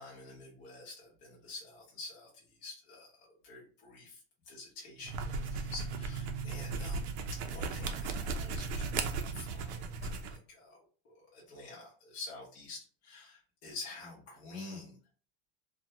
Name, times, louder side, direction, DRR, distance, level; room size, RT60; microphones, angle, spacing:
voice 1, 0.0-2.3 2.6-7.1 7.4-10.8 11.0-15.0, left 3 dB, 35° left, -4 dB, 0.8 m, -48 dB
sound 1, 5.0-10.4, right 4 dB, 80° right, 0.6 m, -36 dB
2.5 x 2.3 x 2.7 m, 0.41 s
supercardioid pair, 165°, 32 cm